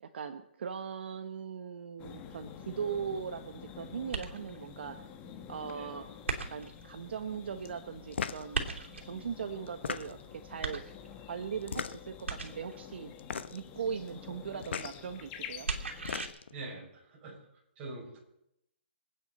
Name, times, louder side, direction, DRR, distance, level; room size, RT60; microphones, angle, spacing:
voice 1, 0.0-5.0 5.5-6.1 6.5-8.7 9.0-10.9 11.3-13.1 13.5-15.7, right 7 dB, 65° right, 7 dB, 1.1 m, -39 dB
sound 1, 2.0-16.3, left 8 dB, 20° left, 1.1 m, -49 dB
sound 2, 4.1-4.7 6.3-6.8 8.5-9.2 10.6-11.3 12.3-12.8 15.6-16.3, right 4 dB, 90° right, 2.8 m, -36 dB
sound 3, 8.1-8.5 9.7-10.4 11.6-12.2 13.2-13.7 14.6-14.9 15.8-16.5, left 6 dB, 70° left, 1.0 m, -37 dB
voice 2, 16.5-17.4 17.8-18.2, right 2 dB, 25° right, -3 dB, 6.5 m, -44 dB
26.5 x 9.0 x 4.3 m, 0.81 s
hypercardioid pair, 155°, 6 cm